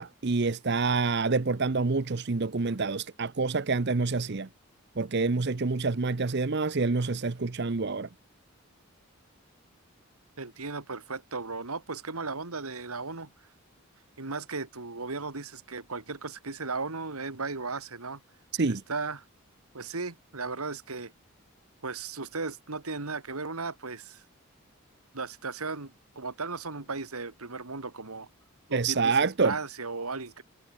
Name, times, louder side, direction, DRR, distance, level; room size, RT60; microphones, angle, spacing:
voice 1, 0.0-4.5 5.0-8.1 18.5-18.8 28.7-29.5, right 4 dB, 50° right, 0.7 m, -27 dB
voice 2, 10.4-13.3 14.2-18.2 18.9-19.2 19.7-21.1 21.8-24.2 25.1-28.3 28.7-30.4, right 4 dB, 90° right, 2.3 m, -36 dB
head